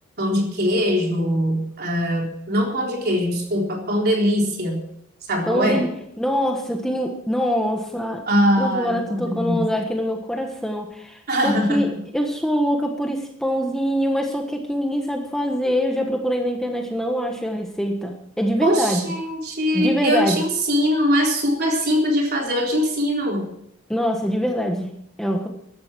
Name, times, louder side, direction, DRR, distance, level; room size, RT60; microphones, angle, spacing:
voice 1, 0.2-4.8 5.3-5.9 8.3-9.6 11.3-11.9 18.6-23.5, equal, 45° right, 1 dB, 3.8 m, -22 dB
voice 2, 5.5-8.2 8.6-19.0 19.7-20.4 23.9-25.5, equal, ahead, 2 dB, 1.3 m, -24 dB
15.0 x 12.0 x 6.0 m, 0.73 s
head